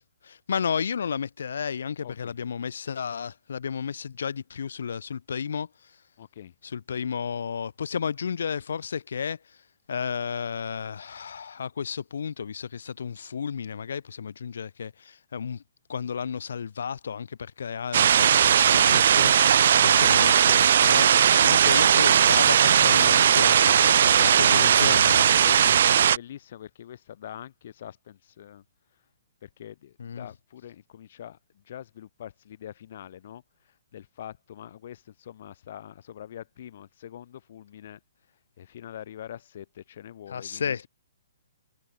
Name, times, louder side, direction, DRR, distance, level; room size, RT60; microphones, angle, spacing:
voice 1, 0.2-5.7 6.7-9.4 9.9-15.6 15.9-21.1 21.4-23.8 24.0-25.3 30.0-30.3 40.3-40.9, left 7 dB, 75° left, 5.8 m, -32 dB
voice 2, 2.0-2.3 6.2-6.5 23.7-28.6 29.4-38.0 38.3-40.9, left 10 dB, 50° left, 4.6 m, -44 dB
sound 1, 17.9-26.2, right 9 dB, 60° right, 1.7 m, -18 dB
hypercardioid pair, 165°, 0 cm